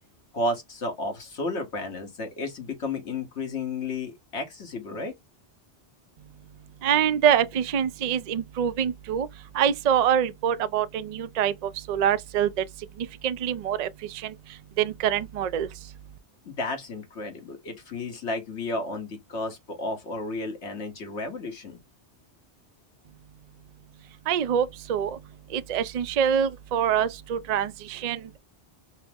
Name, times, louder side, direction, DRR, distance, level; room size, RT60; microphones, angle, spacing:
voice 1, 0.3-5.1 16.4-21.8, left 2 dB, 80° left, 1.6 m, -32 dB
voice 2, 6.8-9.3 9.5-12.5 13.2-13.9 14.2-14.3 14.8-15.7 24.3-25.1 25.5-28.4, right 9 dB, 55° right, 0.4 m, -25 dB
5.4 x 2.0 x 3.5 m
omnidirectional pair, 1.2 m